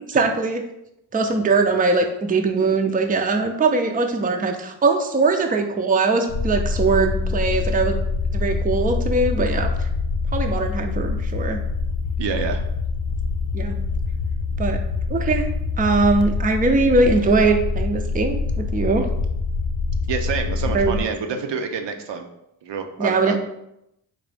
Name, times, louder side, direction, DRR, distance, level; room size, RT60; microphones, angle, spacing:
voice 1, 0.1-0.6 1.1-8.0 8.3-9.9 10.3-11.6 13.5-13.8 14.6-14.8 15.1-15.5 15.8-19.1 20.7-21.0 23.0-23.4, right 3 dB, 20° right, 5 dB, 0.4 m, -21 dB
sound 1, 6.3-21.0, left 4 dB, 70° left, 0.5 m, -25 dB
voice 2, 12.2-12.6 20.1-22.3 22.6-23.4, right 6 dB, 75° right, 5 dB, 0.6 m, -27 dB
3.9 x 2.6 x 3.3 m, 0.83 s
cardioid pair, 55°, 44 cm